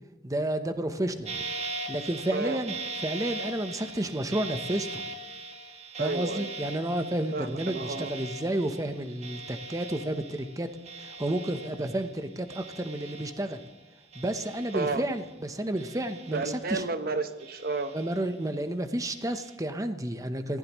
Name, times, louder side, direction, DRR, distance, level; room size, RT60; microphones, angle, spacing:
voice 1, 0.2-1.4 1.9-5.1 6.0-10.7 11.0-13.6 14.1-16.8 17.9-20.6, right 1 dB, 20° right, 8 dB, 0.9 m, -31 dB
sound 1, 1.3-13.8 14.1-15.3 15.8-17.0 17.4-18.5 19.0-19.6, right 3 dB, 35° right, 1.5 m, -41 dB
voice 2, 6.0-6.5 7.3-8.1 14.7-15.0 16.3-17.9, right 3 dB, 55° right, 8 dB, 1.1 m, -31 dB
24.5 x 15.5 x 3.1 m, 1.1 s
head